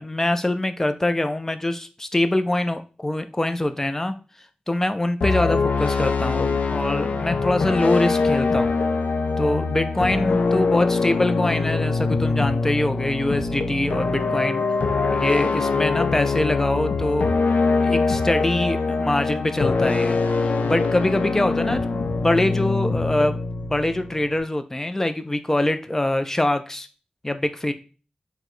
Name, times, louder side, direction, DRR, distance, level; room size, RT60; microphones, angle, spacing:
voice 1, 0.0-4.1 4.7-8.8 9.4-14.6 15.1-17.3 17.8-20.2 20.6-23.4 23.7-26.9 27.2-27.7, left 1 dB, 15° left, 9 dB, 0.4 m, -24 dB
sound 1, 5.2-24.4, left 4 dB, 85° left, 0.4 m, -23 dB
4.5 x 2.1 x 3.8 m, 0.35 s
wide cardioid pair, 90°, 3 cm